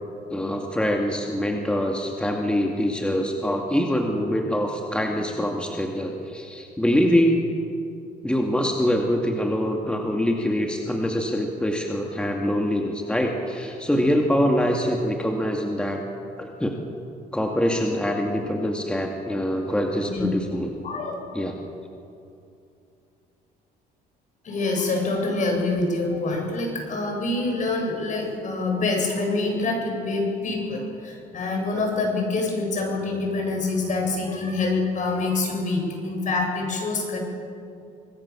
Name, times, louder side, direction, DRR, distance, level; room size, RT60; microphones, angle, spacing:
voice 1, 0.3-7.4 8.2-16.0 16.4-16.8 17.3-20.7 21.3-21.5, equal, 5° left, 1 dB, 2.2 m, -24 dB
voice 2, 20.8-21.1 24.4-37.2, left 3 dB, 50° left, 1 dB, 7.6 m, -26 dB
26.0 x 20.0 x 7.4 m, 2.6 s
cardioid pair, 110°, 17 cm